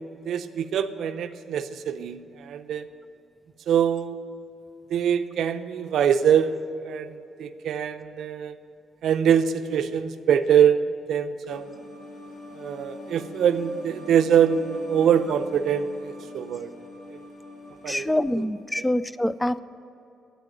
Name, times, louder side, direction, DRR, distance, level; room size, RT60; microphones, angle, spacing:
voice 1, 0.2-2.9 3.7-4.2 4.9-8.5 9.0-10.8 11.1-11.7 12.6-16.7 17.1-17.2 17.8-18.2 18.8-18.9, right 8 dB, 80° right, 10 dB, 0.6 m, -24 dB
sound 1, 11.5-18.5, left 2 dB, 90° left, 2.4 m, -42 dB
voice 2, 17.9-19.6, left 1 dB, 10° left, 16 dB, 0.4 m, -25 dB
9.5 x 8.5 x 9.1 m, 2.8 s
cardioid pair, 100°, 0 cm